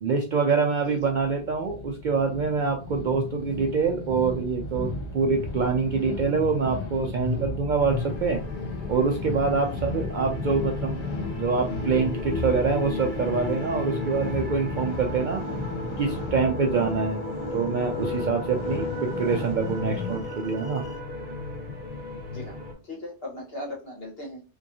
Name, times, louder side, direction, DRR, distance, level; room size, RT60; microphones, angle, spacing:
voice 1, 0.0-8.4 8.9-11.1 11.3-15.4 16.0-17.2 17.5-20.8, right 5 dB, 60° right, 2 dB, 0.5 m, -25 dB
sound 1, 0.8-20.2, left 3 dB, 40° left, 0.4 m, -35 dB
sound 2, 7.8-22.7, left 2 dB, 10° right, 0.9 m, -36 dB
sound 3, 7.9-21.0, left 4 dB, 80° left, 0.9 m, -39 dB
voice 2, 22.8-24.4, left 1 dB, 60° left, -2 dB, 1.5 m, -38 dB
3.6 x 3.0 x 2.7 m, 0.33 s
omnidirectional pair, 1.2 m